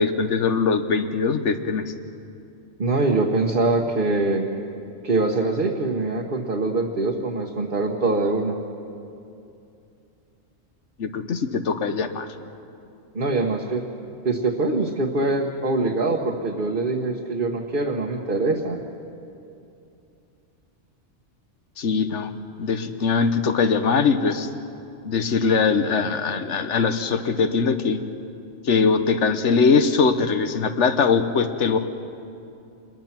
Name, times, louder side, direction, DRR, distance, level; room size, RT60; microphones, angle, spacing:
voice 1, 0.0-1.9 11.0-12.3 21.8-22.3 22.6-24.5 25.0-28.0 28.6-31.8, left 5 dB, 80° left, 9 dB, 1.4 m, -21 dB
voice 2, 2.8-4.5 5.0-8.6 13.1-13.8 14.2-18.8, right 3 dB, 50° right, 0 dB, 1.5 m, -23 dB
28.5 x 21.5 x 6.0 m, 2.6 s
omnidirectional pair, 1.2 m